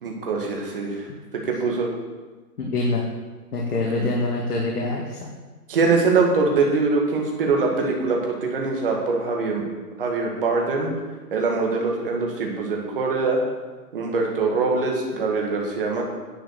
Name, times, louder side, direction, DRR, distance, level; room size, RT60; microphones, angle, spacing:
voice 1, 0.0-1.0 1.5-1.9 3.9-4.1 5.7-9.6 10.0-10.9 11.3-13.4 13.9-16.0, right 4 dB, 35° right, 0 dB, 2.0 m, -23 dB
voice 2, 2.6-3.0 3.5-5.2, left 2 dB, 70° left, -2 dB, 2.1 m, -25 dB
10.5 x 7.4 x 6.5 m, 1.3 s
hypercardioid pair, 175°, 47 cm